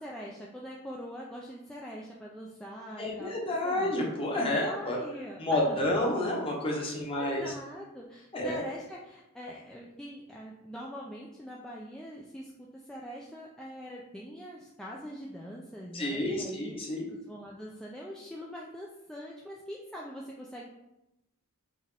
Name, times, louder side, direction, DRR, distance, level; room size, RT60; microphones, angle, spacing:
voice 1, 0.0-3.3 3.6-3.9 4.7-5.9 7.1-16.7 17.1-20.8, equal, 5° left, -4 dB, 0.3 m, -43 dB
voice 2, 3.0-5.0 5.4-7.4 8.3-8.6 15.9-17.0, left 1 dB, 25° left, -2 dB, 1.0 m, -30 dB
5.3 x 2.5 x 3.3 m, 0.92 s
head